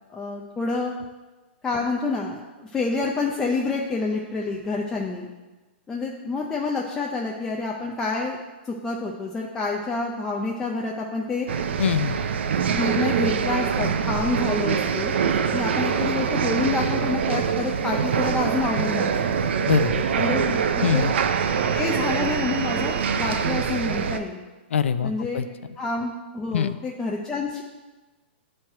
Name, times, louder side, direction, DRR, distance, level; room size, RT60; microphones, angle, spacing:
voice 1, 0.1-0.9 1.6-5.3 5.9-8.4 8.7-11.5 12.8-15.1 15.5-19.3 20.2-21.1 21.7-24.4 25.0-25.4 25.8-27.6, left 3 dB, 10° left, -2 dB, 0.4 m, -28 dB
sound 1, 11.5-24.2, right 7 dB, 70° right, 0.5 m, -24 dB
voice 2, 11.8-12.2 19.7-20.0 20.8-21.1 24.7-25.5 26.5-26.7, left 8 dB, 90° left, 12 dB, 0.4 m, -23 dB
9.3 x 3.2 x 4.5 m, 1.2 s
hypercardioid pair, 165°, 6 cm